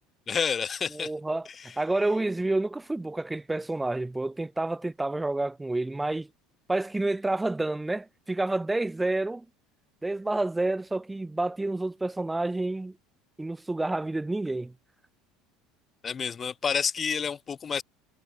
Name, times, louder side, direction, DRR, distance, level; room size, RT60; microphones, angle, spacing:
voice 1, 0.3-1.1 1.5-1.7 16.0-17.8, left 6 dB, 30° left, 4.8 m, -29 dB
voice 2, 0.9-1.5 1.8-6.3 6.7-9.5 10.0-13.0 13.4-14.7, right 2 dB, 10° right, 1.7 m, -29 dB
hypercardioid pair, 70°, 0 cm